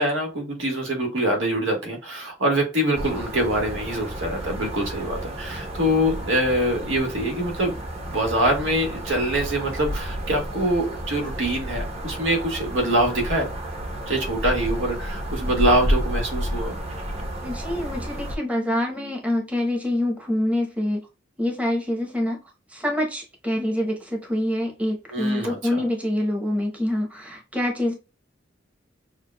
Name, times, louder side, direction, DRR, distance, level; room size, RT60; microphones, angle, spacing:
voice 1, 0.0-7.7 8.1-13.5 14.1-16.8 25.1-25.8, right 1 dB, 85° right, 2 dB, 1.4 m, -24 dB
sound 1, 2.9-18.4, equal, 35° right, 1.0 m, -31 dB
voice 2, 17.4-21.1 21.4-22.4 22.7-27.9, left 1 dB, 5° right, 0 dB, 0.9 m, -26 dB
6.5 x 2.2 x 2.3 m, 0.29 s
head